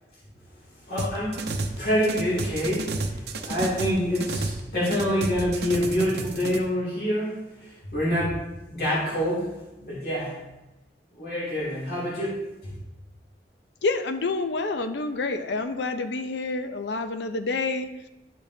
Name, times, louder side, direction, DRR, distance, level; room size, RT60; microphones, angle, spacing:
voice 1, 0.8-8.4 8.7-10.4 11.1-12.8, equal, 55° left, -8 dB, 2.6 m, -27 dB
sound 1, 1.0-1.8 2.0-4.6 4.9-6.6, right 2 dB, 65° right, 0.7 m, -31 dB
voice 2, 13.8-17.9, left 3 dB, 80° left, 9 dB, 0.6 m, -28 dB
11.5 x 5.2 x 2.8 m, 0.98 s
head